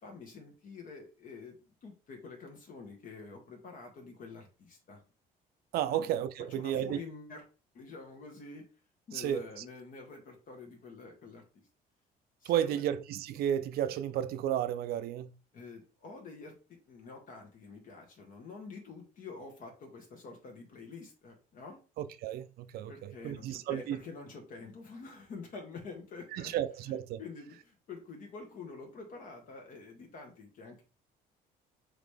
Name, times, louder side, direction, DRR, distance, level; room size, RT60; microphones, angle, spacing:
voice 1, 0.0-5.0 5.9-6.1 6.5-7.4 7.7-8.7 9.1-11.7 12.4-12.8 15.5-21.8 22.9-26.5 26.9-30.8, left 4 dB, 55° left, 1.1 m, -47 dB
voice 2, 5.7-7.0 9.1-9.4 12.4-15.3 22.0-24.0 26.3-27.2, right 10 dB, 65° right, 0.4 m, -33 dB
3.9 x 3.2 x 3.2 m
cardioid pair, 110°, 17 cm